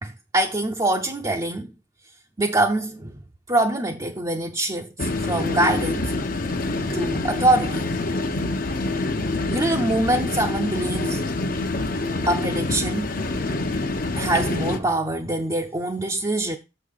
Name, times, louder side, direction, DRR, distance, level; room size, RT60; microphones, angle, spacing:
voice 1, 0.0-1.7 2.4-3.1 3.5-6.1 6.9-7.8 9.5-11.3 12.3-13.1 14.1-16.6, right 1 dB, 20° right, 0.7 m, -24 dB
sound 1, 5.0-14.8, left 2 dB, 50° left, 0.9 m, -26 dB
6.7 x 5.5 x 6.5 m
head